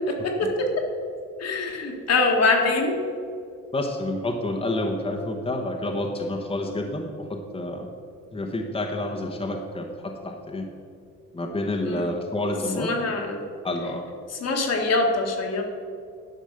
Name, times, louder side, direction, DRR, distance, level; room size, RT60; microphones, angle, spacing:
voice 1, 0.1-0.5 1.4-3.0 11.8-12.1 12.8-13.4 14.3-15.6, left 3 dB, 55° left, 1 dB, 1.6 m, -24 dB
voice 2, 3.7-7.9 8.3-10.7 11.3-12.9 13.6-14.0, left 1 dB, 20° left, 1 dB, 1.1 m, -29 dB
10.5 x 5.2 x 6.6 m, 2.3 s
cardioid pair, 90°, 30 cm